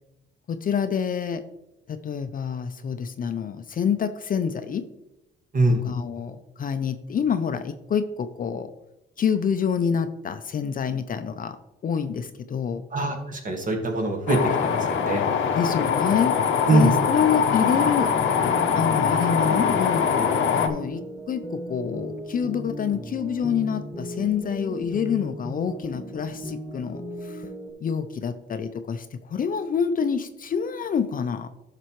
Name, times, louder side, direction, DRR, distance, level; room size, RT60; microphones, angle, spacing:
voice 1, 0.5-1.4 1.9-4.9 5.7-8.7 9.2-11.6 11.8-12.8 15.5-16.3 16.7-18.1 18.8-20.3 20.6-27.4 27.8-31.5, left 7 dB, 45° left, 10 dB, 0.5 m, -27 dB
voice 2, 12.9-15.2 16.7-16.9, right 2 dB, 40° right, 2 dB, 1.7 m, -23 dB
sound 1, 14.3-20.7, left 6 dB, 80° left, 0.8 m, -23 dB
sound 2, 18.1-27.7, equal, 15° left, 1.6 m, -36 dB
11.0 x 6.0 x 3.1 m, 0.95 s
cardioid pair, 90°, 20 cm